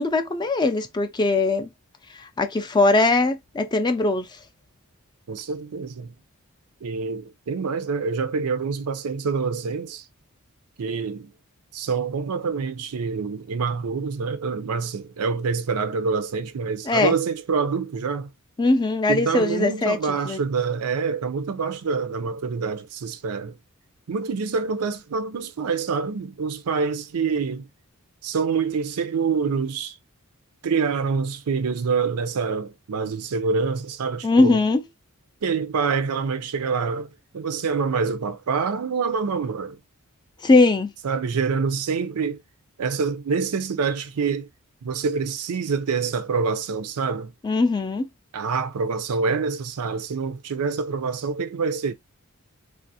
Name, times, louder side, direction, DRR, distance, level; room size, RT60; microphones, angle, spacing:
voice 1, 0.0-1.7 2.1-4.4 16.9-17.2 18.6-20.4 34.2-34.8 40.4-40.9 47.4-48.1, left 3 dB, 20° left, 0.3 m, -21 dB
voice 2, 5.3-6.1 6.8-10.0 10.8-11.3 11.7-18.3 19.1-23.6 24.1-27.7 28.2-30.0 30.6-34.6 35.4-39.8 41.0-42.4 42.8-44.5 44.8-47.3 48.3-51.9, right 5 dB, 90° right, 0.5 m, -26 dB
3.3 x 2.4 x 2.7 m
head